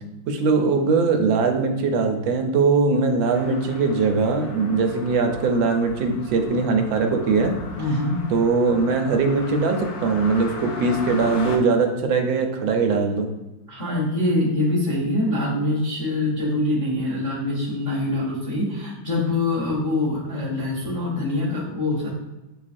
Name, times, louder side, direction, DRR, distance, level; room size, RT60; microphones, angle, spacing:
voice 1, 0.3-7.6 8.3-13.3, right 4 dB, 85° right, 4 dB, 1.3 m, -21 dB
sound 1, 3.2-11.6, left 3 dB, 75° left, 0.9 m, -37 dB
voice 2, 7.8-8.2 13.7-22.1, left 2 dB, 25° left, -6 dB, 0.8 m, -24 dB
7.1 x 2.4 x 2.5 m, 1.0 s
omnidirectional pair, 2.1 m